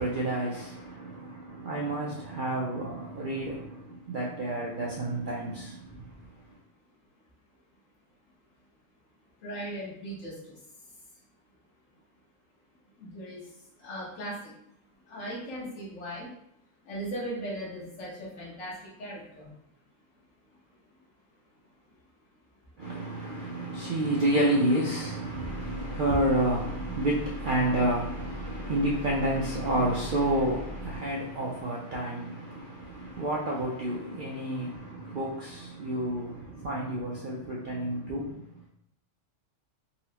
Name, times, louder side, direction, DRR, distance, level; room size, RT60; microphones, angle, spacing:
voice 1, 0.0-6.1 22.8-38.4, right 1 dB, 60° right, 0.5 m, -30 dB
voice 2, 9.4-10.6 13.0-13.5 13.8-14.5 15.1-16.3 16.8-19.5, right 1 dB, 85° left, 1.4 m, -38 dB
sound 1, 25.4-31.0, left 2 dB, 50° left, 1.2 m, -40 dB
4.0 x 2.0 x 2.8 m
omnidirectional pair, 1.3 m